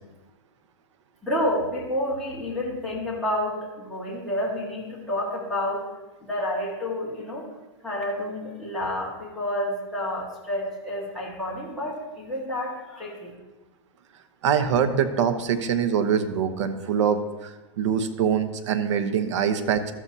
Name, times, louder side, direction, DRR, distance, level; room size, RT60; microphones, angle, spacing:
voice 1, 1.2-5.8 6.2-7.4 7.8-13.3, left 1 dB, ahead, -6 dB, 1.7 m, -29 dB
voice 2, 14.4-19.9, right 7 dB, 65° right, 8 dB, 1.0 m, -24 dB
13.0 x 7.3 x 2.8 m, 1.1 s
supercardioid pair, 160°, 16 cm